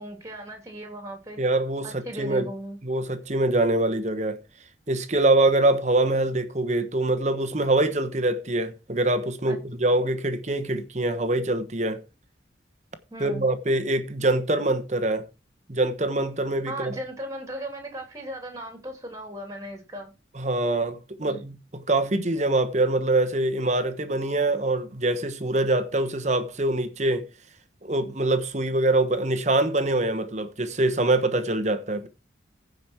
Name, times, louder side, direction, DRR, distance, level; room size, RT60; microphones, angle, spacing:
voice 1, 0.0-1.4 1.8-2.8 9.4-9.6 13.1-13.4 16.6-20.1 21.2-21.4, right 1 dB, 20° right, 3.2 m, -37 dB
voice 2, 1.4-2.5 2.8-4.4 4.9-12.0 13.2-15.3 15.7-16.9 20.3-27.3 27.8-32.1, right 2 dB, 40° right, 1.1 m, -24 dB
15.5 x 5.3 x 4.6 m
head